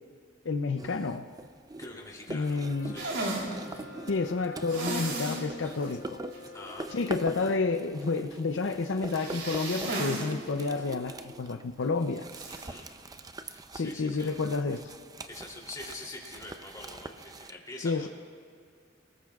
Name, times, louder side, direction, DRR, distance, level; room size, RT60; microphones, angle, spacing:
voice 1, 0.4-1.3 2.3-3.0 4.1-6.2 6.9-12.3 13.8-14.9 17.8-18.1, left 4 dB, 80° left, 7 dB, 0.6 m, -30 dB
sound 1, 0.8-17.5, right 2 dB, 20° right, 0.5 m, -43 dB
voice 2, 1.8-3.1 3.7-3.9 6.4-6.9 12.5-12.9 13.4-14.3 15.3-18.1, left 2 dB, 20° left, -2 dB, 3.0 m, -45 dB
Brass instrument, 2.7-7.6, left 4 dB, 55° left, 2.5 m, -49 dB
sound 2, 3.0-3.5 4.7-5.5 5.8-5.9 6.3-6.4 9.1-10.3 10.6-10.7 12.3-12.7, right 2 dB, 80° right, 3.3 m, -34 dB
28.0 x 19.0 x 2.4 m, 2.3 s
head